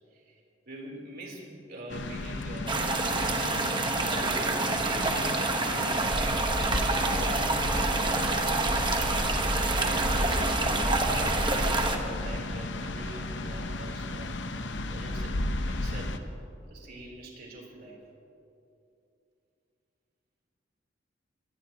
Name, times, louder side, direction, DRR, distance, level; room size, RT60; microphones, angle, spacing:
voice 1, 0.1-3.7 4.1-6.6 7.5-8.8 9.2-10.8 11.3-14.4 14.9-16.2 16.7-18.0, right 1 dB, 55° right, -1 dB, 3.7 m, -44 dB
sound 1, 1.9-16.2, left 2 dB, 70° left, 0.9 m, -34 dB
sound 2, 2.7-12.0, right 2 dB, 25° right, 1.2 m, -27 dB
24.5 x 19.0 x 3.0 m, 2.6 s
head